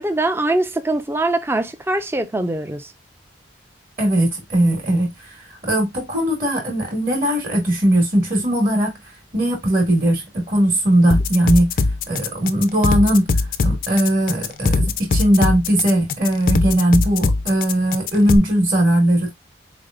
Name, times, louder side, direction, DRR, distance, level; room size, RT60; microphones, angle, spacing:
voice 1, 0.0-2.9, right 2 dB, 15° right, 0.4 m, -22 dB
voice 2, 4.0-9.0 9.3-11.7 12.1-13.3 13.6-19.3, right 1 dB, 45° right, 1.6 m, -19 dB
sound 1, 11.1-18.4, left 3 dB, 50° left, 0.4 m, -20 dB
4.1 x 3.4 x 2.4 m
head